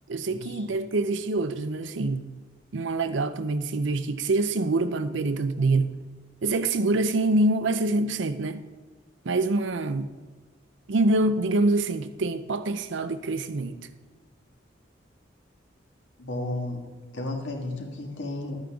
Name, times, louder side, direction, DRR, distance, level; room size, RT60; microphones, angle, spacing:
voice 1, 0.1-2.3 2.7-5.9 6.4-8.6 9.2-10.1 10.9-13.9, right 2 dB, 75° right, 0.6 m, -25 dB
voice 2, 16.2-16.8 17.1-18.6, left 2 dB, 75° left, 1.8 m, -32 dB
12.5 x 8.8 x 3.5 m
head